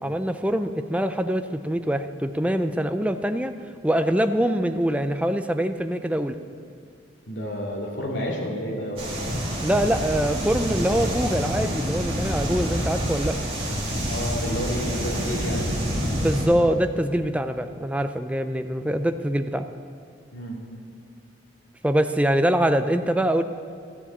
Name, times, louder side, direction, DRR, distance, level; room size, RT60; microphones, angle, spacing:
voice 1, 0.0-3.5 3.8-6.4 9.6-13.4 16.2-19.6 21.8-23.4, right 1 dB, 5° right, 8 dB, 0.4 m, -24 dB
voice 2, 7.3-9.0 14.0-15.6 20.3-20.6, equal, 75° left, -1 dB, 2.4 m, -30 dB
sound 1, 9.0-16.4, equal, 30° right, 3.1 m, -27 dB
13.5 x 7.0 x 8.6 m, 2.4 s
head